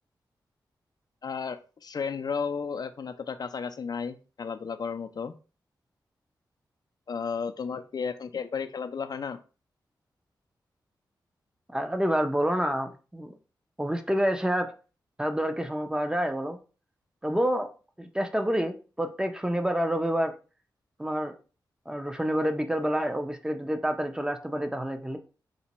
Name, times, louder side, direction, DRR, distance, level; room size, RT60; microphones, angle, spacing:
voice 1, 1.2-5.3 7.1-9.4, left 6 dB, 55° left, 9 dB, 0.4 m, -33 dB
voice 2, 11.7-13.3 13.8-14.7 15.2-16.6 17.2-17.7 18.0-20.3 21.0-21.4 21.9-25.2, equal, 10° right, 7 dB, 0.6 m, -28 dB
4.0 x 2.2 x 2.9 m, 0.35 s
cardioid pair, 50°, 8 cm